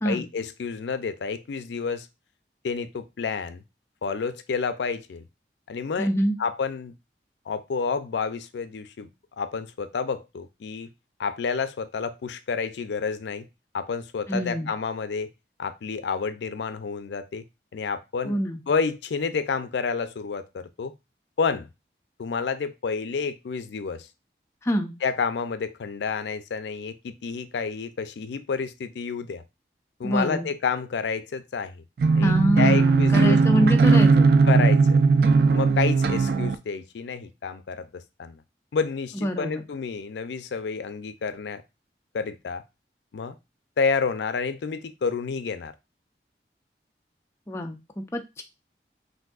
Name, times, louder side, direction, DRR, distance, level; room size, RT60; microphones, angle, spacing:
voice 1, 0.1-2.1 2.6-3.6 4.0-5.2 5.7-6.1 6.4-6.9 7.5-9.1 9.4-10.9 11.2-13.5 13.7-15.3 15.6-17.4 17.7-18.4 18.7-20.9 21.4-21.7 22.2-24.1 25.0-29.4 30.0-31.8 32.2-33.7 34.5-35.0 35.5-38.4 38.7-41.6 42.1-42.6 43.1-43.4 43.8-45.7, left 5 dB, 85° left, 0.4 m, -29 dB
voice 2, 6.0-6.4 14.3-14.7 18.2-18.6 24.6-24.9 30.0-30.5 32.2-34.3 39.1-39.6 47.5-48.4, equal, 15° left, 0.4 m, -25 dB
sound 1, 32.0-36.6, right 4 dB, 60° right, 0.4 m, -18 dB
6.0 x 2.6 x 2.3 m
head